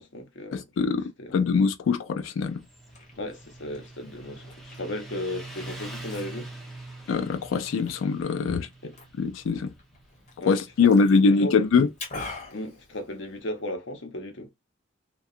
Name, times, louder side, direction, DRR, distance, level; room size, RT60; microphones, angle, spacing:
voice 1, 0.0-1.4 3.2-6.5 8.4-8.9 10.4-11.6 12.5-14.5, left 1 dB, 60° left, 0.7 m, -36 dB
voice 2, 0.5-2.6 7.1-8.7 9.2-9.7 10.5-11.9, left 4 dB, 80° left, 0.3 m, -23 dB
Motorcycle, 2.4-13.5, right 2 dB, ahead, 0.7 m, -45 dB
Liquid, 2.6-13.6, left 3 dB, 40° left, 1.0 m, -46 dB
2.7 x 2.2 x 2.4 m
head